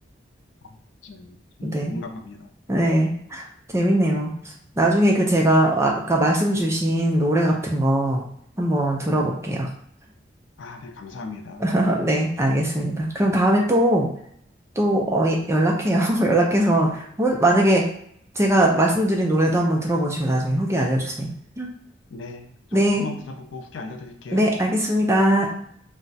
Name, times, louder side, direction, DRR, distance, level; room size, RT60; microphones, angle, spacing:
voice 1, 1.0-2.5 10.6-11.6 16.9-17.0 22.1-24.6, left 3 dB, 85° left, 5 dB, 0.5 m, -37 dB
voice 2, 1.6-2.0 2.7-3.5 3.7-4.3 4.8-8.2 8.6-9.7 11.6-14.1 14.8-17.8 18.4-21.3 21.6-21.7 22.7-23.1 24.3-25.5, right 1 dB, 15° right, -1 dB, 0.4 m, -20 dB
2.4 x 2.2 x 3.9 m, 0.67 s
head